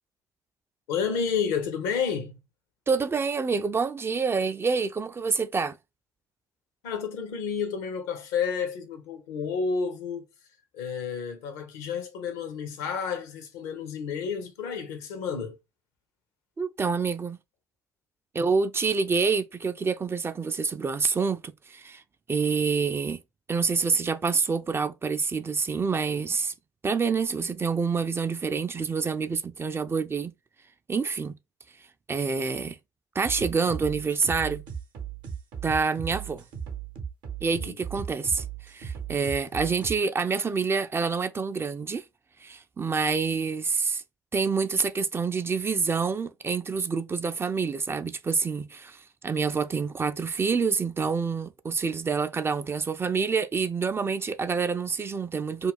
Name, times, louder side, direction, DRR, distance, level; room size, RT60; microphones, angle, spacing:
voice 1, 0.9-2.4 6.8-10.3 10.7-15.6 37.6-37.8, left 6 dB, 75° left, 0.6 m, -30 dB
voice 2, 2.9-5.8 16.6-17.4 18.3-22.0 22.3-23.2 23.5-26.5 26.8-30.3 30.9-31.4 32.1-32.8 33.2-34.6 35.6-36.4 37.4-42.0 42.4-44.0 44.3-55.7, right 5 dB, 25° right, 0.3 m, -27 dB
sound 1, 33.2-40.0, right 7 dB, 60° right, 0.7 m, -37 dB
2.4 x 2.2 x 3.3 m
figure-of-eight pair, 45°, 9 cm